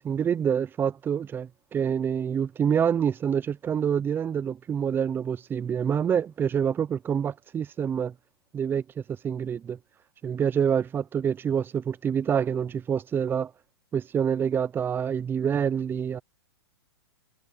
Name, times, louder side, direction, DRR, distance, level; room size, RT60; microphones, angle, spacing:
voice 1, 0.0-8.1 8.5-8.8 9.2-9.8 10.2-13.5 13.9-16.2, right 8 dB, 15° right, 0.8 m, -26 dB
hypercardioid pair, 135°, 13 cm